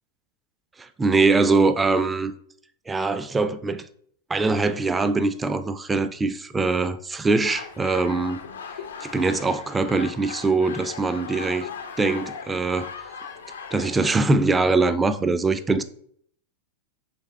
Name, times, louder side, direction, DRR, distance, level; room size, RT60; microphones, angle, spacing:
voice 1, 0.8-2.3 2.9-3.8 4.3-8.4 9.0-11.7 12.0-12.9 13.7-15.8, right 3 dB, 15° right, 0.3 m, -22 dB
sound 1, 7.4-14.2, left 6 dB, 65° left, 0.4 m, -38 dB
4.2 x 3.4 x 3.2 m
figure-of-eight pair, 90°, 0 cm